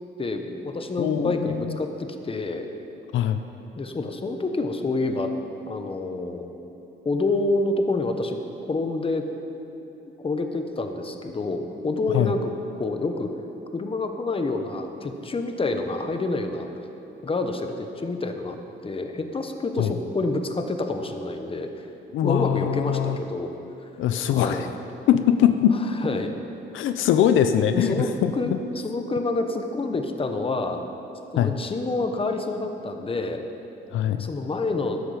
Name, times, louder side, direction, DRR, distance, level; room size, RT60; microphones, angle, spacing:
voice 1, 0.2-2.7 3.8-5.3 5.7-6.5 7.0-8.4 8.7-9.3 10.2-12.5 12.8-13.3 13.7-16.7 17.2-21.9 22.2-23.5 23.8-23.9 24.3-24.7 26.0-26.3 27.7-28.1 28.3-28.5 28.8-30.8 31.3-33.4 34.2-35.0, left 2 dB, 25° left, 6 dB, 1.1 m, -27 dB
voice 2, 1.0-1.8 3.1-3.4 12.1-12.3 19.8-19.9 22.1-23.2 24.0-24.7 25.1-25.8 26.7-28.0 28.2-28.3 31.4-31.5 33.9-34.3, left 10 dB, 85° left, 8 dB, 0.6 m, -22 dB
13.5 x 10.5 x 5.1 m, 3.0 s
cardioid pair, 90°, 20 cm